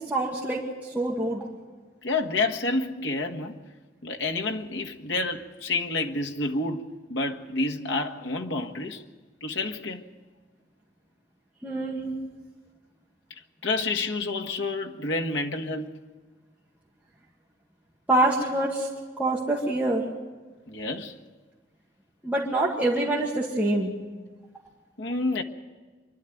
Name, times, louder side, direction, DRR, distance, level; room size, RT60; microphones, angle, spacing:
voice 1, 0.1-1.4 11.6-12.0 18.1-18.9 19.2-20.0 22.2-23.9, right 1 dB, 10° right, 2.0 m, -25 dB
voice 2, 2.0-3.6 4.0-9.0 9.4-10.0 12.0-12.3 13.6-15.9 20.7-21.2 25.0-25.4, left 3 dB, 80° left, 1.6 m, -29 dB
26.0 x 12.0 x 9.3 m
head